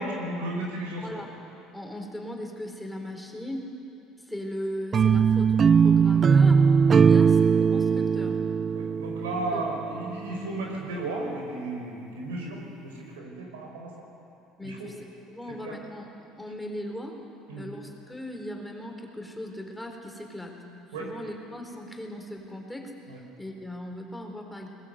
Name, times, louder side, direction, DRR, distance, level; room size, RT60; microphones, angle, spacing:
voice 1, 0.0-1.1 7.0-7.2 8.7-13.9 14.6-14.9 15.6-15.8 17.5-17.7 20.9-21.1 23.1-23.2, right 2 dB, 85° right, 0 dB, 5.2 m, -34 dB
voice 2, 1.0-1.3 1.7-3.7 4.2-8.4 9.5-9.6 14.6-16.1 16.4-17.2 17.6-20.6 21.0-22.9 23.4-24.7, left 1 dB, 5° left, 2 dB, 4.1 m, -38 dB
sound 1, 4.9-10.0, right 6 dB, 40° right, 0.5 m, -20 dB
21.5 x 20.0 x 8.2 m, 2.7 s
hypercardioid pair, 70°, 0 cm